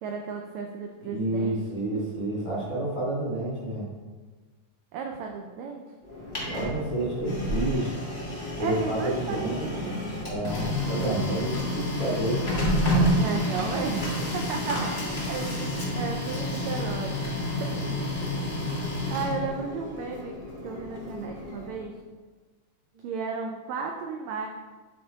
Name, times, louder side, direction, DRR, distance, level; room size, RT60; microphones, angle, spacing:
voice 1, 0.0-1.6 4.9-5.8 8.6-10.0 12.9-17.1 17.6-18.0 19.1-20.4 20.6-21.9 23.0-24.5, right 5 dB, 80° right, 2 dB, 1.6 m, -34 dB
voice 2, 1.1-3.9 6.3-7.9 8.6-9.9 10.2-12.4, right 1 dB, 35° right, -7 dB, 0.4 m, -29 dB
Printer, 6.0-21.8, left 1 dB, 40° left, 0.6 m, -30 dB
8.9 x 3.4 x 3.9 m, 1.3 s
omnidirectional pair, 3.7 m